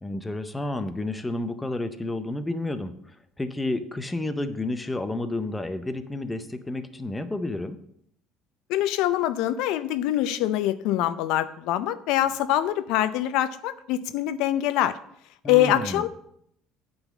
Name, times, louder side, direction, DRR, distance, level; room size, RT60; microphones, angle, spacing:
voice 1, 0.0-7.8 15.4-16.1, left 2 dB, 10° left, 9 dB, 0.5 m, -31 dB
voice 2, 8.7-15.0 15.5-16.1, left 12 dB, 70° left, 13 dB, 0.5 m, -24 dB
8.9 x 3.9 x 7.2 m, 0.72 s
cardioid pair, 145°, 0 cm